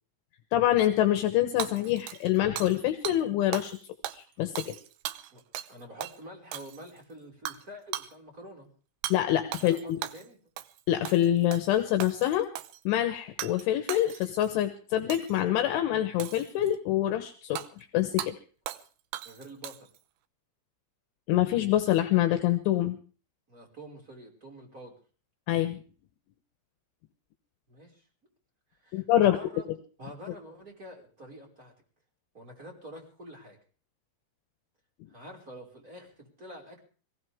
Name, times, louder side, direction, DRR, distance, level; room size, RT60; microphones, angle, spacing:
voice 1, 0.5-3.8 4.1-4.7 9.1-9.8 10.9-12.5 12.9-17.6 17.9-18.4 21.3-23.0 25.5-25.8 28.9-29.4, left 13 dB, 75° left, 7 dB, 3.4 m, -25 dB
Hammer / Shatter, 1.6-2.8 3.0-3.2 3.5-3.8 4.0-5.7 6.0-6.2 6.5-7.0 7.5-7.6 7.9-8.1 9.0-9.2 9.5-10.3 10.6-10.8 11.0-11.7 12.0-12.8 13.4-13.6 13.9-14.5 15.1-15.4 16.2-16.8 17.6-17.7 18.2-18.3 18.7-18.9 19.1-20.0, right 13 dB, 80° right, 2.3 m, -38 dB
voice 2, 5.7-8.7 9.6-10.4 19.2-19.8 23.5-25.0 27.7-28.0 28.8-29.7 30.0-31.7 32.3-33.6 35.1-36.8, equal, 15° right, 0 dB, 5.2 m, -47 dB
22.0 x 17.0 x 3.6 m, 0.40 s
omnidirectional pair, 5.8 m